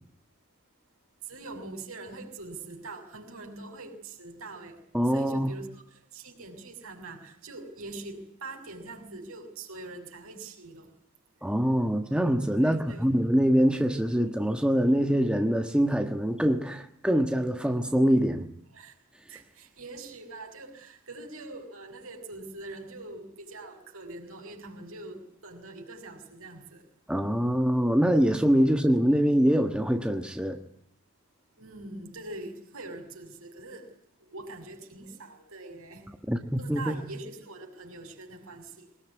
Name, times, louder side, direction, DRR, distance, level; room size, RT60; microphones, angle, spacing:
voice 1, 1.3-4.8 5.1-5.8 6.1-10.9 12.6-13.1 18.7-18.9 19.3-26.8 31.6-33.9 34.3-36.1 36.6-38.9, right 2 dB, 70° right, 6.3 m, -43 dB
voice 2, 4.9-5.5 11.4-18.5 27.1-30.6 36.3-37.1, equal, 5° right, 1.4 m, -24 dB
23.0 x 20.0 x 9.5 m
head